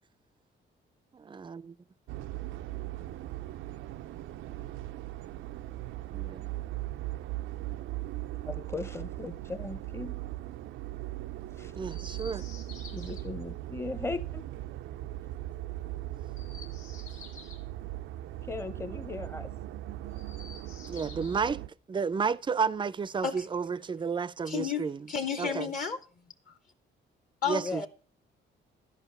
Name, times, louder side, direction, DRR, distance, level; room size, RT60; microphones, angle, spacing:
voice 1, 1.1-1.7 6.1-6.5 11.7-12.4 20.9-21.6 21.9-25.1 25.4-25.7 27.5-27.9, right 5 dB, 25° right, 0.4 m, -32 dB
sound 1, 2.1-21.7, right 15 dB, 85° right, 0.4 m, -39 dB
voice 2, 8.5-10.2 11.6-11.7 12.9-14.5 18.4-19.5 25.4-25.7 27.6-27.9, left 3 dB, 15° left, 0.7 m, -38 dB
Chirp tweet, 11.9-13.2 16.2-17.7 20.0-21.5 22.9-24.0 25.1-26.0, left 5 dB, 85° left, 1.7 m, -51 dB
voice 3, 24.5-26.0 27.4-27.9, left 6 dB, 45° left, 0.9 m, -32 dB
12.0 x 5.3 x 5.4 m
cardioid pair, 90°, 20 cm